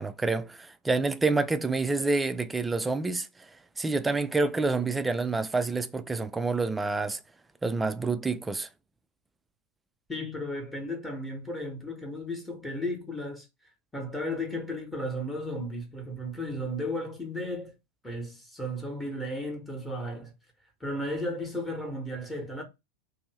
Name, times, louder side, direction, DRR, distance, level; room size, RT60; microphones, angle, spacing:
voice 1, 0.0-3.5 3.8-7.2 7.6-8.7, right 3 dB, 10° right, 0.3 m, -28 dB
voice 2, 10.1-13.5 13.9-17.7 18.0-20.3 20.8-22.6, left 1 dB, 10° left, 0.9 m, -34 dB
2.6 x 2.6 x 3.1 m
figure-of-eight pair, 90°, 0 cm